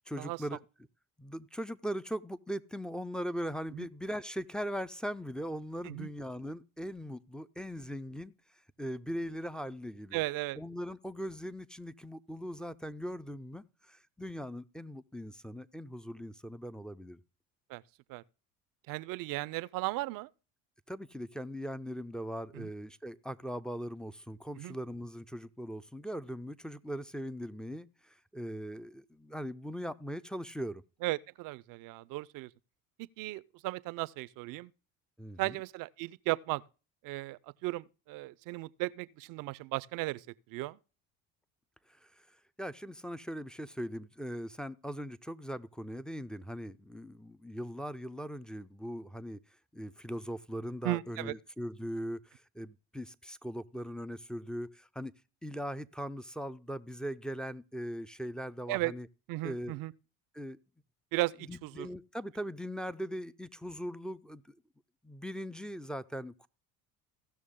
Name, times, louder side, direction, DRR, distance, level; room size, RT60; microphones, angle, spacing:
voice 1, 0.1-0.6 1.2-8.3 8.8-10.2 10.6-17.2 20.9-30.8 35.2-35.6 42.0-42.3 42.6-49.4 49.7-55.1 55.4-59.1 59.4-59.7 60.3-60.6 61.5-64.5 65.0-66.5, equal, ahead, 0.4 m, -40 dB
voice 2, 10.1-10.6 17.7-17.8 18.1-18.2 18.9-20.3 22.5-22.7 24.5-24.8 31.0-32.5 33.0-34.7 35.4-36.6 37.0-40.8 50.8-51.3 58.7-58.9 59.3-59.9 61.1-61.9, right 20 dB, 60° right, 0.5 m, -36 dB
16.0 x 6.3 x 3.7 m
supercardioid pair, 75°, 37 cm